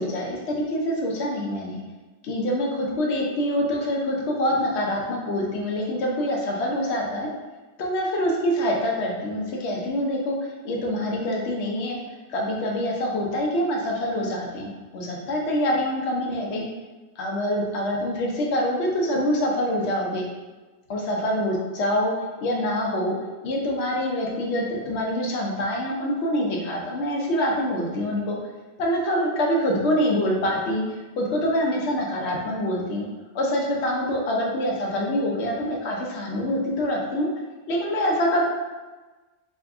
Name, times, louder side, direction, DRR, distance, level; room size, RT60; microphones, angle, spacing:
voice 1, 0.0-1.8 2.2-7.3 7.8-12.0 12.3-16.7 17.2-20.2 20.9-22.1 22.4-23.1 23.4-28.4 28.8-30.8 31.2-33.1 33.3-37.3 37.7-38.4, equal, 75° left, -1 dB, 0.9 m, -25 dB
2.7 x 2.3 x 3.5 m, 1.2 s
omnidirectional pair, 1.1 m